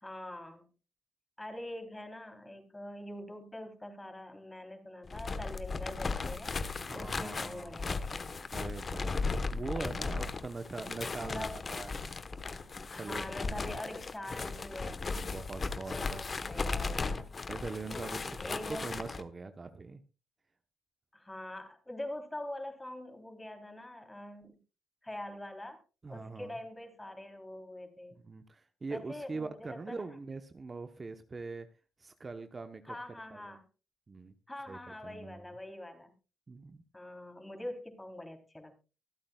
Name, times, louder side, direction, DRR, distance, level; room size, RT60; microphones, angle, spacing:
voice 1, 0.0-0.7 1.4-6.5 6.9-8.4 9.8-9.9 11.2-11.6 12.9-15.0 15.9-17.3 18.4-18.9 21.1-24.6 25.0-25.8 26.1-28.2 28.9-30.0 32.9-33.7 34.5-36.1 36.9-38.8, left 1 dB, 15° left, 5 dB, 3.5 m, -44 dB
sound 1, 5.0-19.2, left 4 dB, 40° left, 1.1 m, -36 dB
voice 2, 6.9-7.8 8.5-9.2 9.5-12.0 13.0-13.8 15.2-16.2 17.5-20.0 26.0-26.6 28.3-31.7 32.0-33.0 33.3-33.6 34.1-34.3 34.7-35.4 36.5-36.8, right 3 dB, 35° right, 8 dB, 1.0 m, -42 dB
24.5 x 8.7 x 2.3 m, 0.31 s
cardioid pair, 80°, 0 cm